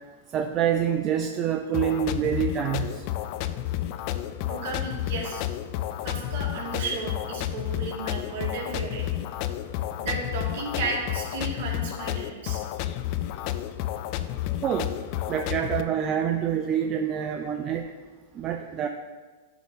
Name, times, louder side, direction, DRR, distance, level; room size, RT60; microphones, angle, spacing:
voice 1, 0.3-3.0 14.6-14.9 15.3-17.9 18.3-18.9, right 9 dB, 30° right, 4 dB, 0.4 m, -26 dB
sound 1, 1.7-15.8, left 13 dB, 45° left, 0.4 m, -31 dB
voice 2, 4.4-5.4 6.0-9.1 10.0-12.6, right 3 dB, 60° right, -2 dB, 2.0 m, -33 dB
10.0 x 3.9 x 4.0 m, 1.4 s
hypercardioid pair, 115°, 0 cm